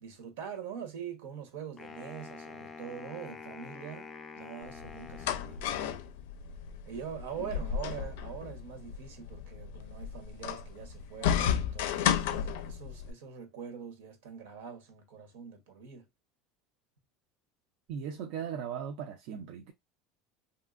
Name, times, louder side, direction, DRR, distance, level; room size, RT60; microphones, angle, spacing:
voice 1, 0.0-4.1 4.3-5.6 6.8-16.0, right 8 dB, 85° right, 1.1 m, -43 dB
Wind instrument woodwind instrument, 1.8-6.0, left 4 dB, 15° left, 0.3 m, -47 dB
sound 1, 4.6-13.1, left 9 dB, 85° left, 0.4 m, -33 dB
voice 2, 17.9-19.7, right 8 dB, 60° right, 0.5 m, -38 dB
3.1 x 2.7 x 2.4 m
cardioid pair, 165°, 0 cm